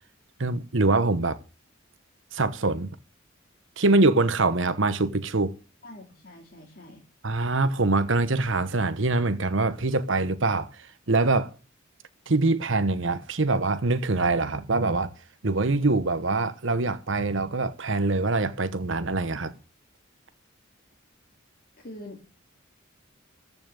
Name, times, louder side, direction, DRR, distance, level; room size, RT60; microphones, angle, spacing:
voice 1, 0.4-1.4 2.3-2.9 3.8-5.5 7.2-11.5 12.3-15.1 15.4-19.6, right 3 dB, 65° right, 1.1 m, -24 dB
voice 2, 5.8-7.0 21.8-22.2, left 1 dB, 45° left, 2.6 m, -44 dB
14.5 x 5.9 x 9.0 m
head